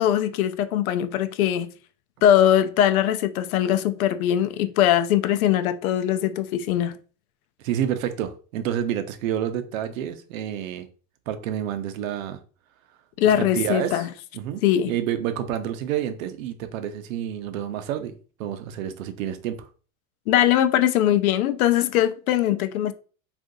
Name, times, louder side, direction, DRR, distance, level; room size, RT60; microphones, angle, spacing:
voice 1, 0.0-1.7 2.2-7.0 13.2-14.1 14.6-14.9 20.3-22.9, left 11 dB, 80° left, 0.5 m, -21 dB
voice 2, 7.6-10.9 11.3-12.4 13.2-14.1 14.3-19.7, right 10 dB, 70° right, 0.7 m, -29 dB
2.7 x 2.5 x 3.6 m
supercardioid pair, 135°, 42 cm